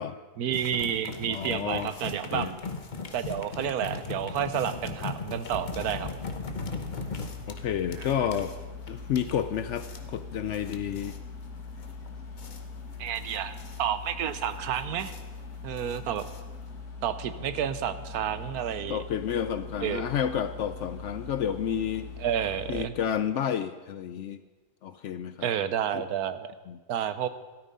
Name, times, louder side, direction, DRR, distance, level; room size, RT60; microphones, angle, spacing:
voice 1, 0.4-2.5 3.1-6.1 8.0-8.1 13.0-15.1 15.6-16.2 17.0-19.0 19.8-20.0 22.2-22.9 25.4-26.5 26.9-27.3, right 9 dB, 80° right, 12 dB, 1.2 m, -30 dB
sound 1, 0.5-16.8, left 4 dB, 35° left, 1.0 m, -39 dB
voice 2, 1.3-1.9 2.3-2.5 7.5-8.5 8.9-11.2 18.9-22.1 22.7-24.4 24.8-25.5 25.9-26.0 26.7-26.8, left 9 dB, 65° left, 11 dB, 0.7 m, -30 dB
sound 2, 5.5-22.7, left 4 dB, 85° left, 2.0 m, -42 dB
13.0 x 13.0 x 5.4 m, 1.3 s
omnidirectional pair, 1.6 m